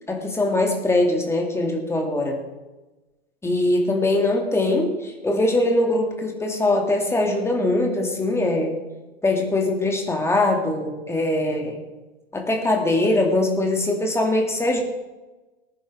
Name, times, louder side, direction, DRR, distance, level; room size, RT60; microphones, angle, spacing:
voice 1, 0.1-2.4 3.4-8.8 9.2-11.8 12.3-14.8, left 2 dB, 10° left, 2 dB, 2.4 m, -22 dB
19.5 x 10.0 x 3.6 m, 1.1 s
figure-of-eight pair, 95°, 31 cm